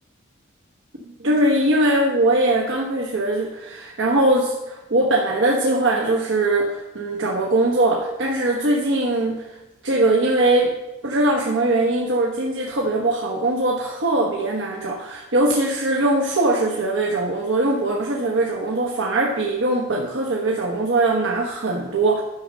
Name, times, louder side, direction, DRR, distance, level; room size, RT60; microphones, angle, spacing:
voice 1, 1.2-9.6 9.8-10.7 11.0-22.2, right 2 dB, 85° right, -1 dB, 1.2 m, -21 dB
11.0 x 6.4 x 5.4 m, 1.0 s
head